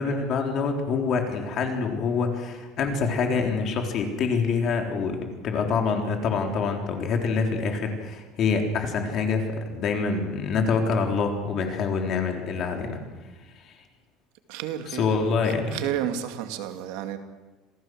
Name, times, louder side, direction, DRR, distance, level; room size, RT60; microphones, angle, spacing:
voice 1, 0.0-5.2 5.4-13.0 13.7-13.8 15.0-15.7, left 5 dB, 40° left, 3.8 m, -26 dB
voice 2, 14.5-15.2 15.4-17.2, right 10 dB, 75° right, 2.4 m, -31 dB
27.5 x 18.0 x 7.8 m
cardioid pair, 160°, 0 cm